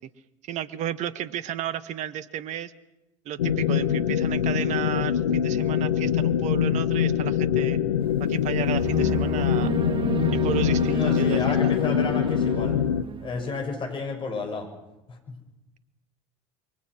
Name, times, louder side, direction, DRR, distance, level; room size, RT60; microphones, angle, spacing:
voice 1, 0.4-2.7 3.2-7.8 8.2-9.7 10.3-11.7, right 11 dB, 50° right, 15 dB, 1.6 m, -33 dB
sound 1, 3.4-13.0, left 9 dB, 80° left, 1.1 m, -24 dB
sound 2, 8.0-8.2 8.7-13.5, right 5 dB, 35° right, 2.3 m, -32 dB
voice 2, 10.9-14.7 15.1-15.4, left 3 dB, 30° left, 5 dB, 6.5 m, -32 dB
28.0 x 23.5 x 6.2 m, 0.94 s
figure-of-eight pair, 70°, 16 cm